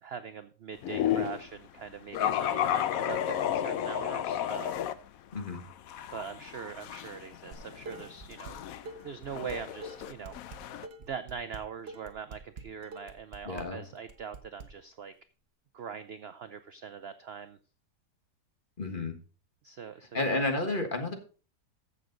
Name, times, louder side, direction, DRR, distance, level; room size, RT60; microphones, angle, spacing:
voice 1, 0.0-4.9 6.1-8.6 8.8-10.7 11.0-15.1 15.7-17.6 19.6-20.8, right 6 dB, 60° right, 11 dB, 0.6 m, -42 dB
sound 1, 0.8-1.4 2.1-4.9 5.4-10.9, left 10 dB, 65° left, 1.0 m, -32 dB
Dishes pots and pans, 7.5-8.5 8.9-14.7, right 3 dB, 45° right, 1.2 m, -45 dB
voice 2, 13.4-13.8 18.8-19.1 20.1-21.1, left 2 dB, 35° left, 5 dB, 1.6 m, -31 dB
15.0 x 6.4 x 3.9 m, 0.36 s
omnidirectional pair, 1.7 m